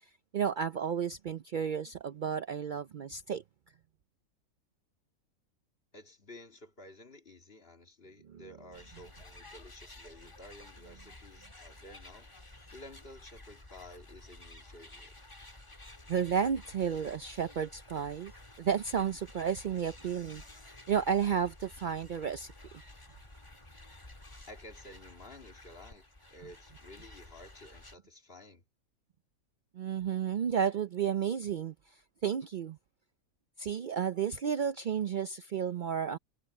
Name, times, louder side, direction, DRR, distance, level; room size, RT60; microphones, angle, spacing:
voice 1, 0.3-3.4 8.3-8.4 16.1-18.3 18.6-20.4 20.9-22.5 29.8-31.7 32.2-32.8 33.6-36.2, right 8 dB, 90° right, 0.4 m, -32 dB
voice 2, 5.9-15.1 24.5-26.0 26.3-28.6, left 1 dB, 40° left, 2.6 m, -52 dB
sound 1, 8.7-28.0, left 1 dB, 20° left, 1.9 m, -52 dB
omnidirectional pair, 1.5 m